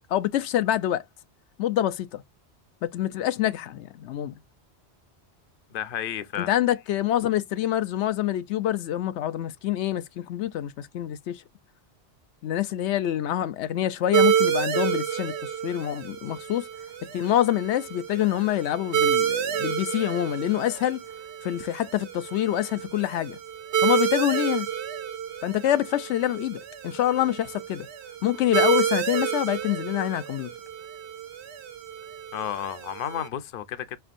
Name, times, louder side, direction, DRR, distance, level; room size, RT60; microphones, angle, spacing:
voice 1, 0.1-1.0 1.6-2.2 2.8-4.3 6.4-11.4 12.4-15.3 15.6-16.7 17.1-21.0 21.4-23.4 23.8-24.7 25.4-27.9 28.2-30.5, left 12 dB, 85° left, 0.9 m, -26 dB
voice 2, 5.7-6.5 32.3-34.0, left 10 dB, 60° left, 0.8 m, -32 dB
sound 1, 14.1-33.3, right 8 dB, 80° right, 1.0 m, -29 dB
5.1 x 3.4 x 2.5 m
omnidirectional pair, 1.1 m